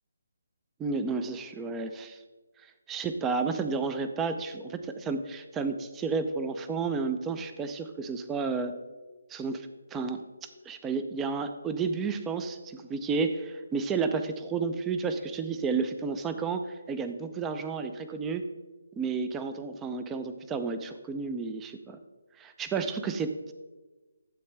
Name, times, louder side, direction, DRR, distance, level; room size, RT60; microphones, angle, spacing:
voice 1, 0.8-2.2 2.6-8.8 9.3-18.4 18.9-22.0 22.4-23.5, right 4 dB, 10° right, 9 dB, 0.5 m, -32 dB
12.5 x 7.7 x 3.4 m, 1.2 s
hypercardioid pair, 160°, 0 cm